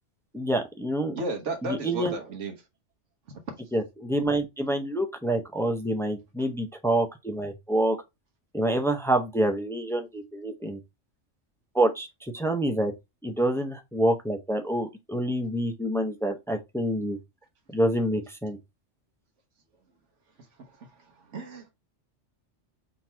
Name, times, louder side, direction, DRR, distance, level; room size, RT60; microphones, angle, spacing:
voice 1, 0.3-1.2 1.6-2.2 3.7-8.0 8.5-10.8 11.7-12.9 13.2-17.2 17.7-18.6, right 1 dB, 5° left, 0.4 m, -27 dB
voice 2, 1.1-2.5 20.6-20.9 21.3-21.7, right 2 dB, 85° right, 1.3 m, -33 dB
3.7 x 2.9 x 4.3 m
omnidirectional pair, 1.2 m